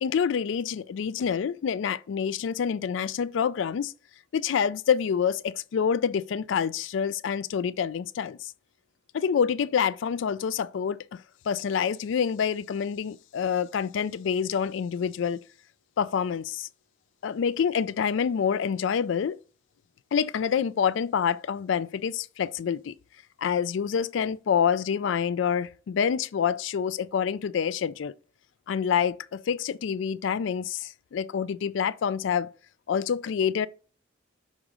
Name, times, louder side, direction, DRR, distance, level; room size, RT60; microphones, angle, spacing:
voice 1, 0.0-3.9 4.3-8.5 9.1-11.2 11.5-15.4 16.0-16.7 17.2-19.4 20.1-22.9 23.4-28.1 28.7-32.5 32.9-33.7, left 7 dB, 70° left, 0.3 m, -27 dB
6.4 x 3.6 x 5.0 m
head